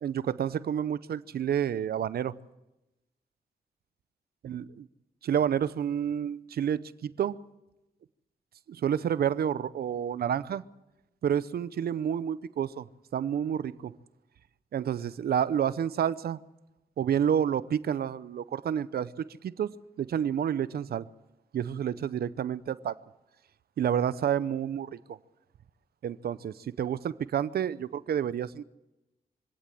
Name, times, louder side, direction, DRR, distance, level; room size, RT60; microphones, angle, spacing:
voice 1, 0.0-2.3 4.4-4.9 5.2-7.4 8.7-10.6 11.2-12.9 13.1-13.9 14.7-16.4 17.0-21.0 21.5-22.9 23.8-25.2 26.0-28.6, right 9 dB, 80° right, 0.7 m, -29 dB
24.5 x 17.0 x 7.6 m
cardioid pair, 80°, 16 cm